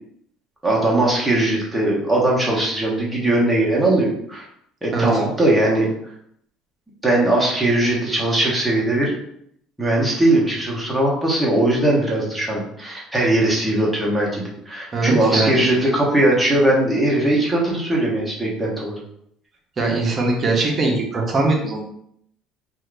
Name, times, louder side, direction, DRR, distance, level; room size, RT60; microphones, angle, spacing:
voice 1, 0.6-4.5 4.8-5.9 7.0-9.1 9.8-19.0, right 1 dB, 5° right, -4 dB, 1.0 m, -19 dB
voice 2, 14.9-15.6 19.8-21.8, right 3 dB, 30° right, 0 dB, 0.8 m, -21 dB
2.7 x 2.4 x 3.3 m, 0.71 s
cardioid pair, 120°, 0 cm